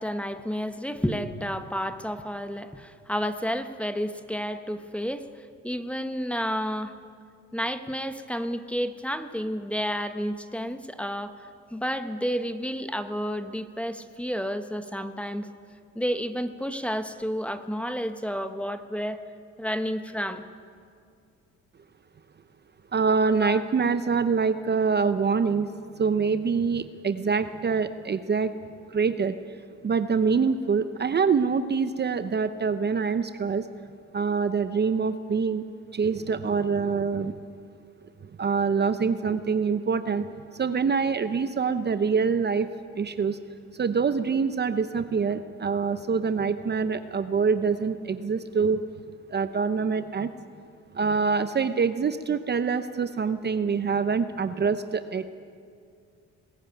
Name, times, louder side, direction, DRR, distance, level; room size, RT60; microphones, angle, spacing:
voice 1, 0.0-7.0 7.5-15.5 15.9-19.2 19.6-20.5 23.4-23.6, equal, 5° left, 9 dB, 1.0 m, -31 dB
voice 2, 22.9-25.7 26.0-28.5 28.9-29.4 29.8-33.7 34.1-35.6 35.9-37.4 38.4-42.7 43.0-43.4 43.8-48.8 49.3-50.3 50.9-55.2, right 5 dB, 35° right, 11 dB, 0.7 m, -25 dB
20.0 x 14.0 x 9.2 m, 2.3 s
cardioid pair, 90°, 30 cm